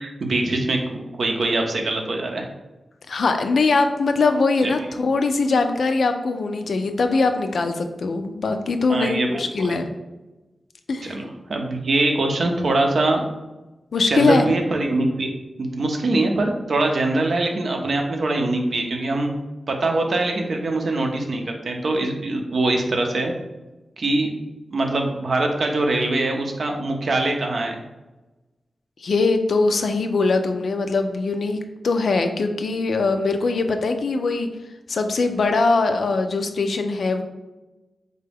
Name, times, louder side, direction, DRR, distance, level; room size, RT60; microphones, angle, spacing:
voice 1, 0.0-2.5 4.6-4.7 8.9-9.8 11.0-13.3 14.1-15.3 15.6-19.3 19.7-23.3 24.0-24.3 24.7-27.8, right 2 dB, 70° right, 2 dB, 0.6 m, -23 dB
voice 2, 3.1-9.9 10.9-11.2 13.9-14.5 29.0-34.5 34.9-37.2, left 3 dB, 75° left, 6 dB, 0.3 m, -21 dB
3.9 x 2.2 x 3.4 m, 1.1 s
cardioid pair, 55°, 0 cm